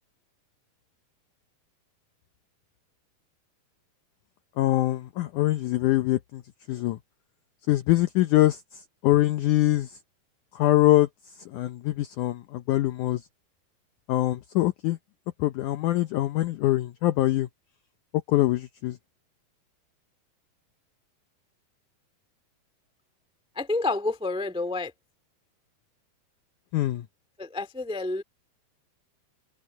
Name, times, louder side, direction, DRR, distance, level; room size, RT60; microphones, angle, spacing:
voice 1, 4.6-6.4 6.7-7.0 7.7-9.9 10.5-11.1 11.5-13.2 14.1-15.0 15.4-17.5 18.3-19.0 26.7-27.1, left 15 dB, 80° left, 1.8 m, -23 dB
voice 2, 23.5-24.9 27.4-28.2, left 2 dB, 5° right, 0.4 m, -29 dB
omnidirectional pair, 4.4 m